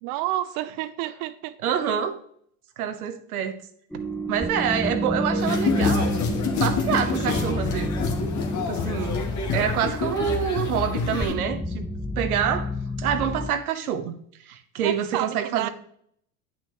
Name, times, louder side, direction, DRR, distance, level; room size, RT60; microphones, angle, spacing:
voice 1, 0.0-1.5 5.3-5.5 14.8-15.7, right 14 dB, 50° right, 0.6 m, -30 dB
voice 2, 1.6-2.2 2.8-3.6 4.3-6.3 6.6-7.9 8.7-9.2 9.5-11.8 12.2-12.7 13.0-14.2 14.5-15.7, right 9 dB, 85° right, 1.0 m, -26 dB
sound 1, 3.9-13.5, left 1 dB, ahead, 0.4 m, -29 dB
sound 2, 5.4-11.3, left 5 dB, 40° left, 1.5 m, -27 dB
9.2 x 5.9 x 3.1 m
hypercardioid pair, 90°, 43 cm